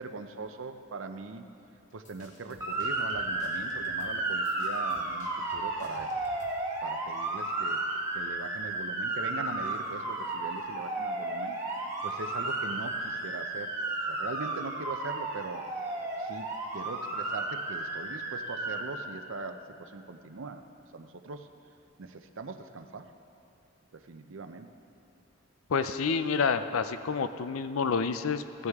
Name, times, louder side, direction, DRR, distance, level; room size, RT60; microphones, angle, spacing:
voice 1, 0.0-1.4 1.9-6.1 6.8-7.8 8.1-11.6 12.0-13.7 14.1-15.7 16.2-16.5 16.7-20.6 20.9-21.5 22.0-23.1 23.9-24.7, right 3 dB, 70° right, 8 dB, 0.6 m, -41 dB
sound 1, 1.9-6.7, left 1 dB, 35° left, 1.3 m, -55 dB
Motor vehicle (road) / Siren, 2.6-18.8, right 2 dB, 15° right, 1.2 m, -33 dB
voice 2, 25.7-28.7, left 5 dB, 85° left, 11 dB, 0.5 m, -29 dB
16.0 x 9.6 x 3.6 m, 2.8 s
head